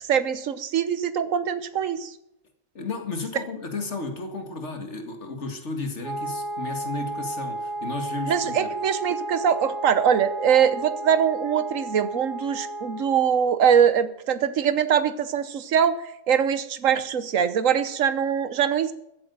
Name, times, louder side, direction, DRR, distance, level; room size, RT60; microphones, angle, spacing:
voice 1, 0.0-2.1 8.3-16.0 16.3-18.9, right 8 dB, 70° right, 12 dB, 1.3 m, -22 dB
voice 2, 2.7-8.7, left 3 dB, 55° left, 4 dB, 2.2 m, -33 dB
Wind instrument woodwind instrument, 6.0-13.4, right 2 dB, 35° left, 3.1 m, -33 dB
14.5 x 8.7 x 6.8 m, 0.81 s
omnidirectional pair, 1.5 m